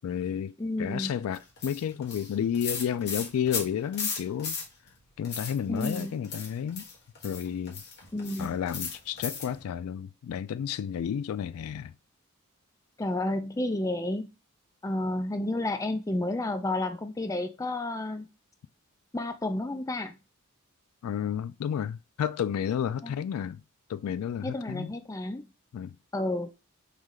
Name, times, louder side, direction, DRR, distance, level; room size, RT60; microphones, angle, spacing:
voice 1, 0.0-4.6 5.2-6.9 7.2-7.8 8.4-11.9 21.0-23.6 23.9-24.9 25.7-25.9, left 8 dB, 85° left, 0.3 m, -31 dB
voice 2, 0.6-1.1 5.7-6.2 8.1-8.6 13.0-14.3 14.8-18.3 19.1-20.2 23.0-23.2 24.4-25.5 26.1-26.5, left 1 dB, 15° left, 0.4 m, -31 dB
sound 1, 1.3-4.9 5.2-9.6, left 5 dB, 55° left, 1.4 m, -36 dB
3.2 x 3.1 x 3.7 m
head